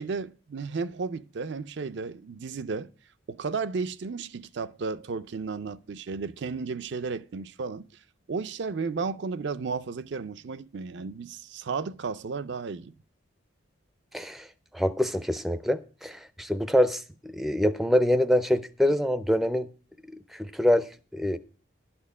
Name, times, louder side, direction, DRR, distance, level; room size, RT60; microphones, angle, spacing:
voice 1, 0.0-2.9 3.3-7.9 8.3-12.9, right 4 dB, 60° right, 0.4 m, -33 dB
voice 2, 14.1-14.5 14.7-19.7 20.3-21.4, left 1 dB, ahead, 0.4 m, -25 dB
12.0 x 4.3 x 8.3 m
head